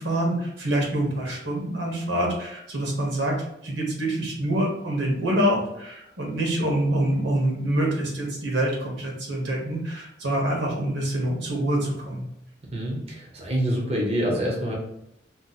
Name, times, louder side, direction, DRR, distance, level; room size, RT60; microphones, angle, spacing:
voice 1, 0.0-3.4 3.6-12.2, right 1 dB, 90° right, -1 dB, 1.0 m, -26 dB
voice 2, 12.7-14.7, equal, 35° right, -2 dB, 0.6 m, -26 dB
2.7 x 2.0 x 3.9 m, 0.79 s
head